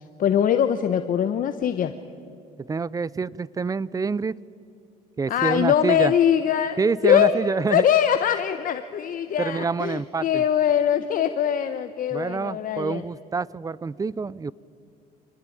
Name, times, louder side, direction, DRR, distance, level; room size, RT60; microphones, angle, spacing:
voice 1, 0.2-1.9 5.3-7.3 7.7-13.0, left 9 dB, 55° left, 9 dB, 1.1 m, -22 dB
voice 2, 2.6-4.4 5.2-6.1 6.8-7.8 9.4-10.4 12.1-14.5, right 4 dB, 20° right, 22 dB, 0.5 m, -27 dB
25.0 x 20.5 x 8.8 m, 2.5 s
cardioid pair, 110°, 17 cm